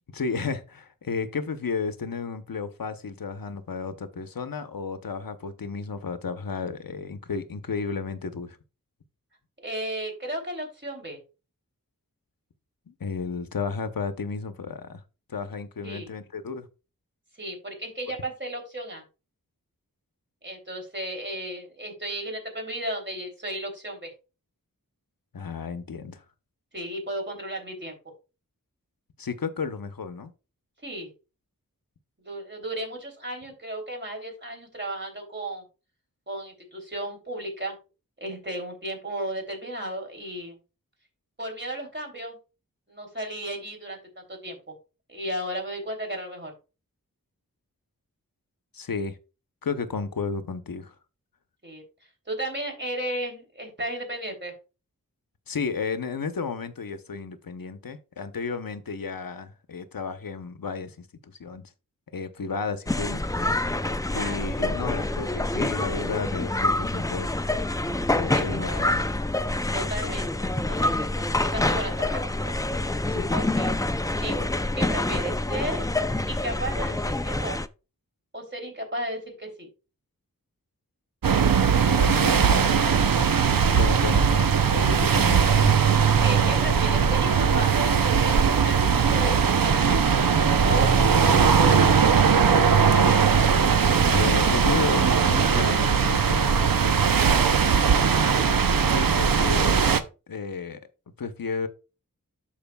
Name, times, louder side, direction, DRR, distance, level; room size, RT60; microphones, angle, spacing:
voice 1, 0.1-8.6 12.9-15.0 15.3-16.7 25.3-26.2 29.2-30.3 48.7-49.2 49.6-50.9 55.5-61.6 62.1-63.3 64.1-67.4 68.1-69.0 70.0-70.1 73.1-73.3 81.9-83.0 83.8-85.8 91.3-91.5 94.1-96.5 98.9-99.9 100.3-100.8 101.2-101.7, left 5 dB, 90° left, 0.9 m, -33 dB
voice 2, 9.6-11.2 15.8-16.1 17.4-19.0 20.4-24.1 26.7-28.0 30.8-31.1 32.2-35.6 36.3-37.8 38.2-40.5 41.4-42.4 42.9-44.8 45.1-46.5 51.6-51.8 52.3-54.5 64.1-64.5 68.3-68.9 69.7-72.5 73.3-73.7 74.2-75.9 76.2-77.6 78.3-79.7 86.2-89.9 90.7-92.2 92.9-93.4, right 1 dB, 35° right, 3.2 m, -34 dB
sound 1, 62.9-77.7, left 2 dB, 10° left, 0.4 m, -27 dB
sound 2, 81.2-100.0, right 6 dB, 85° right, 0.7 m, -20 dB
12.5 x 4.9 x 2.3 m
wide cardioid pair, 55°, 34 cm